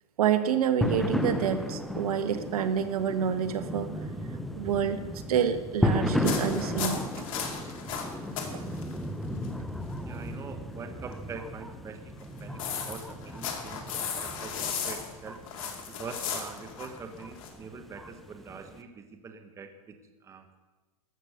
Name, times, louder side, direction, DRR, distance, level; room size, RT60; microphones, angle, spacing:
voice 1, 0.2-3.9 4.5-5.0 5.3-7.3 8.5-8.6, right 8 dB, 70° right, 10 dB, 1.3 m, -28 dB
sound 1, 0.8-18.8, left 1 dB, ahead, 0.5 m, -34 dB
sound 2, 6.2-8.5 8.8-9.0 9.4-9.5 12.2-17.5, left 7 dB, 55° left, 2.5 m, -35 dB
voice 2, 10.1-15.4 16.0-19.9 20.2-20.6, right 5 dB, 15° right, 7 dB, 1.0 m, -44 dB
14.0 x 6.7 x 7.8 m, 1.2 s
hypercardioid pair, 135°, 20 cm